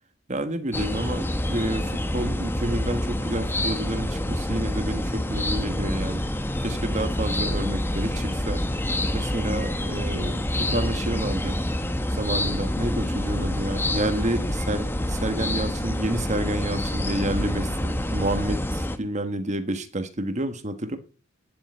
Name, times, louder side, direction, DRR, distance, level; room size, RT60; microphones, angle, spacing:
voice 1, 0.3-6.2 6.6-8.8 9.1-11.6 12.1-21.0, right 1 dB, 35° right, 1.4 m, -29 dB
sound 1, 0.7-19.0, left 1 dB, 10° left, 1.0 m, -27 dB
10.5 x 7.8 x 9.4 m
head